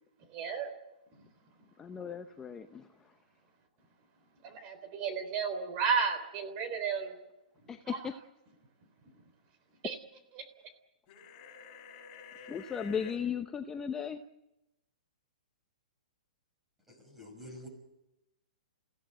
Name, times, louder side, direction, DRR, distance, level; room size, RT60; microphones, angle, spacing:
voice 1, 0.3-0.7 4.4-7.2 7.9-8.0 9.8-10.0, right 6 dB, 30° right, 8 dB, 3.8 m, -33 dB
voice 2, 1.8-3.1 7.7-8.1 12.5-14.2, left 7 dB, 10° left, 7 dB, 0.8 m, -36 dB
sound 1, 11.1-13.2, left 6 dB, 30° left, 7.0 m, -50 dB
voice 3, 17.0-17.7, left 1 dB, 5° right, 3 dB, 6.1 m, -47 dB
29.5 x 16.5 x 7.7 m, 0.93 s
hypercardioid pair, 155°, 4 cm